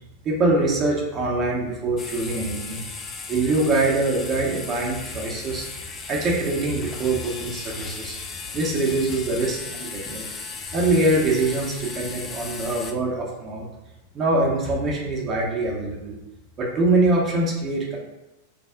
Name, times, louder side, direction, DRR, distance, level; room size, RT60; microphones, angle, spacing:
voice 1, 0.2-2.8 3.3-5.7 6.1-8.1 8.5-10.2 10.7-13.6 14.1-16.2 16.6-18.0, right 2 dB, 30° right, -3 dB, 0.7 m, -23 dB
sound 1, 2.0-12.9, left 4 dB, 25° left, 0.4 m, -36 dB
3.3 x 2.0 x 3.7 m, 0.99 s
figure-of-eight pair, 90°, 0 cm